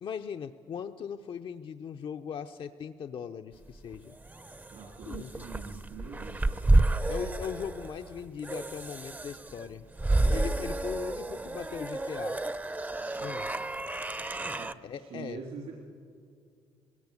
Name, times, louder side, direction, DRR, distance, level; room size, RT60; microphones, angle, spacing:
voice 1, 0.0-4.2 5.1-5.4 7.1-9.9 10.2-12.4 13.2-13.5 14.8-15.4, left 7 dB, 50° left, 7 dB, 0.6 m, -39 dB
sound 1, 3.7-14.7, right 2 dB, 15° right, 0.7 m, -30 dB
voice 2, 4.7-6.5 13.2-13.3 14.6-15.7, right 5 dB, 70° right, -1 dB, 3.4 m, -44 dB
20.5 x 17.0 x 8.4 m, 2.2 s
cardioid pair, 85°, 11 cm